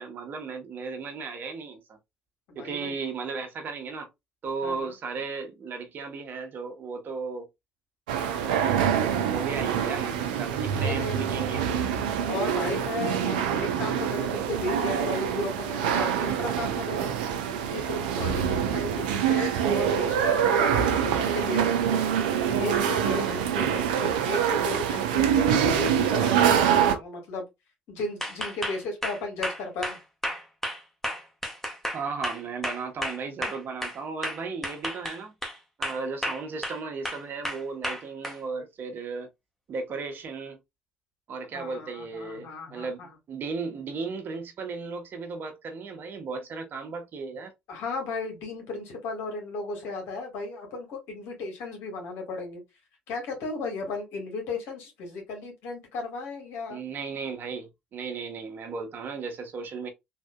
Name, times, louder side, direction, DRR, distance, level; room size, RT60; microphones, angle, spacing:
voice 1, 0.0-2.0 2.5-4.1 4.4-7.5 8.2-8.8 9.2-11.9 31.9-35.3 35.8-39.3 39.7-40.6 41.3-47.5 56.7-59.9, right 4 dB, 50° right, 1.0 m, -35 dB
voice 2, 2.5-2.9 4.6-4.9 10.7-11.5 12.3-17.2 17.7-22.1 22.5-27.5 27.9-30.0 41.5-43.1 47.7-52.6 53.1-56.8, left 3 dB, 70° left, 1.6 m, -35 dB
sound 1, 8.1-27.0, right 8 dB, 85° right, 0.5 m, -25 dB
sound 2, 28.2-34.0 34.2-35.6 35.8-36.8 37.0-38.4, equal, 5° left, 1.2 m, -32 dB
3.6 x 2.6 x 2.2 m
hypercardioid pair, 55°, 4 cm